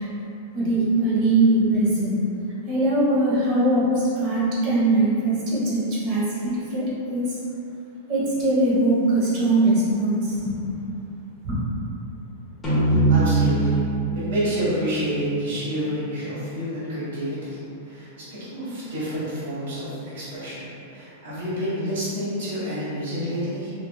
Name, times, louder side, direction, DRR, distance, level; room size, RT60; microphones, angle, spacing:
voice 1, 0.5-2.1 2.7-3.9 4.2-6.8 7.1-7.3 8.1-10.8 11.4-11.6, right 2 dB, 40° right, -8 dB, 0.9 m, -21 dB
sound 1, 12.6-16.1, right 2 dB, 15° left, 0.9 m, -23 dB
voice 2, 12.9-13.8 14.1-17.6 17.8-23.7, equal, 70° right, -11 dB, 1.3 m, -29 dB
3.1 x 2.4 x 2.2 m, 2.8 s
supercardioid pair, 140°, 0 cm